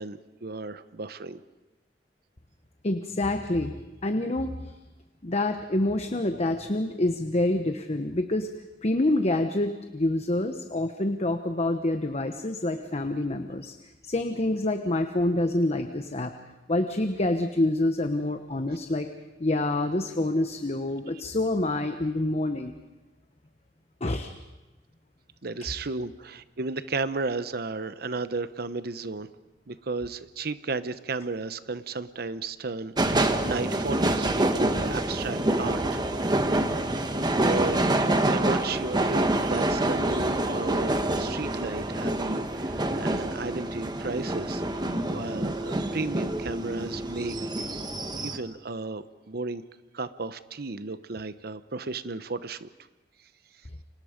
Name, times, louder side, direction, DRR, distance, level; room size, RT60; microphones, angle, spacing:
voice 1, 0.0-1.4 25.4-29.3 29.7-36.6 37.1-37.9 38.2-44.8 45.1-47.7 48.2-49.6 49.9-52.7, right 3 dB, 60° right, 13 dB, 0.9 m, -34 dB
voice 2, 2.8-3.7 4.0-4.7 5.2-8.5 8.8-13.7 14.0-16.3 16.7-19.1 19.4-22.7 24.0-24.3, left 1 dB, 40° left, 7 dB, 1.1 m, -27 dB
sound 1, 33.0-48.4, right 1 dB, 25° right, 1.4 m, -27 dB
30.0 x 25.5 x 5.2 m, 1.1 s
head